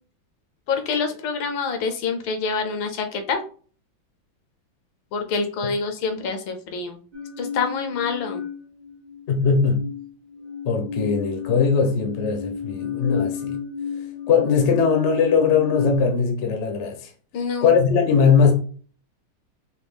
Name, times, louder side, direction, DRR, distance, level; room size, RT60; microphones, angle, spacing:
voice 1, 0.7-3.4 5.1-7.0 7.4-8.4 17.3-17.7, left 5 dB, 75° left, 1.4 m, -26 dB
sound 1, 7.1-9.2 9.5-16.0, left 7 dB, 35° right, 0.7 m, -32 dB
voice 2, 9.3-9.8 10.7-13.6 14.3-17.1 17.6-18.5, left 5 dB, 55° left, 0.8 m, -20 dB
4.9 x 2.3 x 3.5 m
omnidirectional pair, 2.2 m